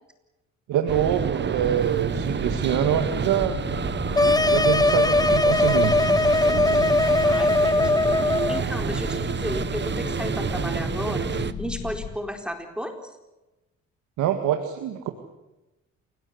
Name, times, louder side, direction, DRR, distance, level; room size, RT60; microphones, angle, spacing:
voice 1, 0.7-3.6 4.4-6.0 14.2-15.1, right 9 dB, 85° right, 6 dB, 2.1 m, -25 dB
sound 1, 0.9-11.5, right 6 dB, 35° right, 1.2 m, -29 dB
sound 2, 2.2-12.2, left 6 dB, 45° left, 2.4 m, -35 dB
sound 3, 4.2-8.6, left 2 dB, 15° left, 0.9 m, -20 dB
voice 2, 7.2-13.1, equal, 5° right, 5 dB, 4.2 m, -34 dB
28.5 x 18.5 x 8.1 m, 1.0 s
cardioid pair, 90°, 30 cm